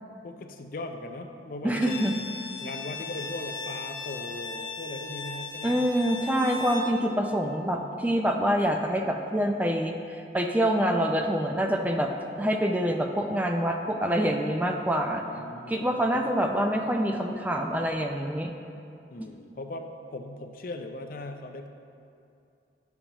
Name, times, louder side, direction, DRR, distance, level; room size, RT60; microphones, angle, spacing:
voice 1, 0.2-2.2 2.6-5.8 15.0-16.3 19.1-21.7, left 2 dB, 50° left, 5 dB, 0.5 m, -39 dB
voice 2, 1.6-2.1 5.6-12.1 12.4-15.2 15.7-18.5, equal, 10° right, 3 dB, 0.4 m, -26 dB
Bowed string instrument, 1.8-7.0, left 3 dB, 85° left, 1.1 m, -37 dB
9.8 x 7.0 x 3.0 m, 2.5 s
head